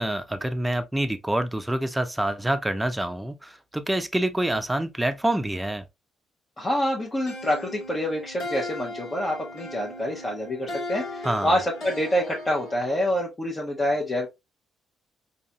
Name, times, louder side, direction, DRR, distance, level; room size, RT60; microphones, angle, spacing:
voice 1, 0.0-5.8 11.2-11.5, right 1 dB, 10° right, 0.6 m, -26 dB
voice 2, 6.6-14.3, equal, 30° left, 0.9 m, -27 dB
sound 1, 7.3-13.0, left 1 dB, 65° left, 1.9 m, -37 dB
3.9 x 2.8 x 2.2 m
hypercardioid pair, 55°, 0 cm